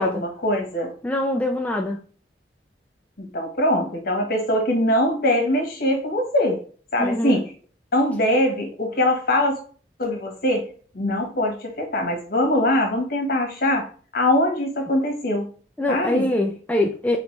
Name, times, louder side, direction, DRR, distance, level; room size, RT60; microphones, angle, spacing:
voice 1, 0.0-0.9 3.2-6.6 6.9-7.4 7.9-9.6 10.0-10.7 10.9-13.9 14.1-15.5 15.9-16.3, left 1 dB, 60° left, 1.3 m, -22 dB
voice 2, 1.0-2.0 7.0-7.4 15.8-17.2, left 1 dB, 10° left, 0.4 m, -23 dB
4.9 x 3.0 x 3.1 m
head